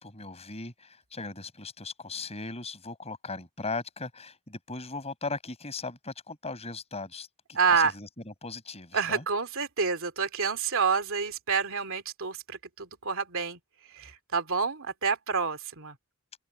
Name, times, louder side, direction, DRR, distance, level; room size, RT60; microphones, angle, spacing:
voice 1, 0.0-9.2, left 3 dB, 30° left, 5.6 m, -38 dB
voice 2, 7.5-7.9 8.9-13.6 13.9-16.0, right 5 dB, 65° right, 2.9 m, -28 dB
open air
head